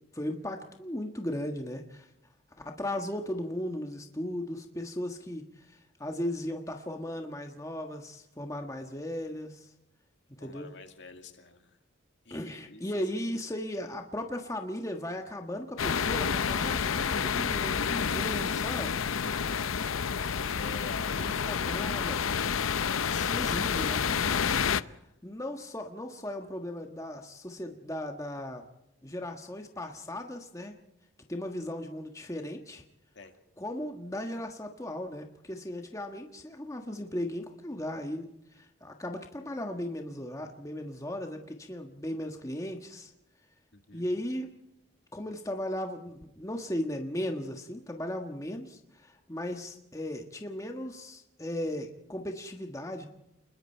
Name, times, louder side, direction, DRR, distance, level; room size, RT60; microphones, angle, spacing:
voice 1, 0.1-2.1 2.6-9.7 10.3-10.7 12.3-19.0 21.2-22.5 23.3-24.2 25.2-28.6 29.0-30.8 31.3-32.8 33.6-43.1 43.9-44.5 45.1-53.1, left 1 dB, 15° left, 3 dB, 1.4 m, -37 dB
voice 2, 10.4-11.8 12.2-13.1 19.4-19.8 20.5-21.8 22.6-25.0 33.1-33.4 43.7-44.0, left 4 dB, 60° left, 6 dB, 2.3 m, -48 dB
sound 1, 15.8-24.8, left 6 dB, 85° left, 0.7 m, -29 dB
28.5 x 21.5 x 4.5 m, 0.85 s
head